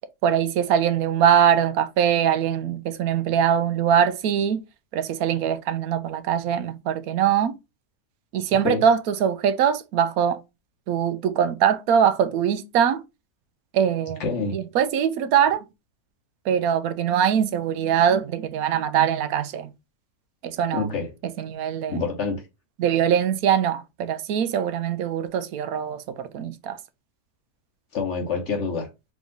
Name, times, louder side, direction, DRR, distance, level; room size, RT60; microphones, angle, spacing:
voice 1, 0.2-4.6 4.9-7.5 8.3-10.4 10.9-13.0 13.7-14.3 14.5-15.7 16.5-19.7 20.4-20.9 21.2-22.0 22.8-26.8, right 8 dB, 75° right, 1.0 m, -22 dB
voice 2, 14.2-14.6 20.7-21.1 21.9-22.4 27.9-28.9, left 4 dB, 50° left, 1.1 m, -26 dB
3.6 x 3.0 x 3.8 m
omnidirectional pair, 1.7 m